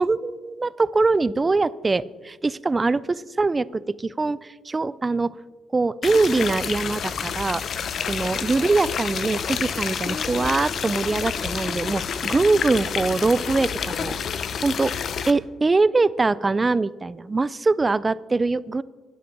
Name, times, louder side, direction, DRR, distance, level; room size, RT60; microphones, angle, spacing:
voice 1, 0.0-5.3 5.7-7.6 8.1-14.2 14.6-14.9 15.3-18.8, right 3 dB, 25° right, 19 dB, 0.4 m, -23 dB
sound 1, 6.0-15.3, left 7 dB, 60° left, 0.7 m, -29 dB
10.0 x 10.0 x 5.9 m, 1.3 s
cardioid pair, 90°, 0 cm